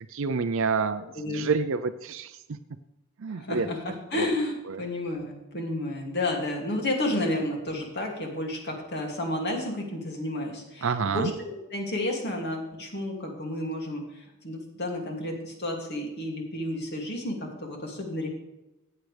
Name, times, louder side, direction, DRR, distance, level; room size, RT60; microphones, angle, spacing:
voice 1, 0.1-2.4 3.2-3.7 4.1-4.3 4.7-4.8 10.8-11.3, right 5 dB, 65° right, 10 dB, 0.5 m, -28 dB
voice 2, 1.1-1.5 3.3-18.3, left 1 dB, 50° left, 0 dB, 2.6 m, -31 dB
14.5 x 9.1 x 3.4 m, 0.97 s
head